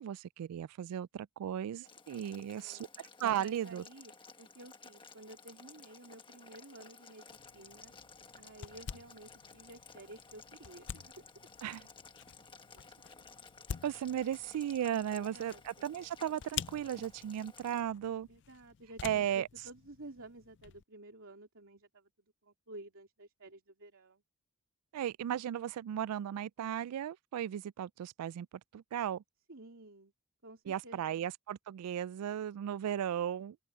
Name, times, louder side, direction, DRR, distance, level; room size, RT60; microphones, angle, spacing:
voice 1, 0.0-3.8 11.6-11.8 13.8-18.3 19.0-19.5 24.9-28.5 28.7-29.2 30.7-33.6, right 10 dB, 85° right, 0.3 m, -36 dB
Boiling, 1.8-17.8, left 5 dB, 20° left, 1.2 m, -55 dB
voice 2, 2.3-2.8 3.4-4.1 4.4-7.9 8.4-11.5 15.1-15.9 18.3-24.2 29.5-30.1 30.4-31.3, right 2 dB, 65° right, 3.4 m, -53 dB
sound 1, 7.3-20.8, left 8 dB, 55° left, 0.4 m, -48 dB
open air
head